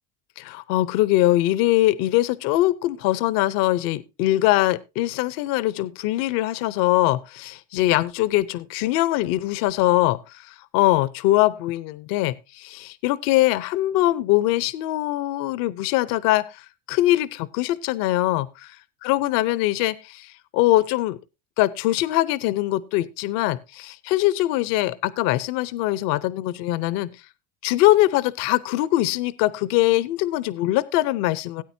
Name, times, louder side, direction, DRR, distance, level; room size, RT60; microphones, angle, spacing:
voice 1, 0.4-18.5 19.0-21.2 21.6-27.1 27.6-31.6, left 16 dB, 75° left, 0.7 m, -22 dB
17.5 x 8.9 x 2.6 m
supercardioid pair, 110°, 35 cm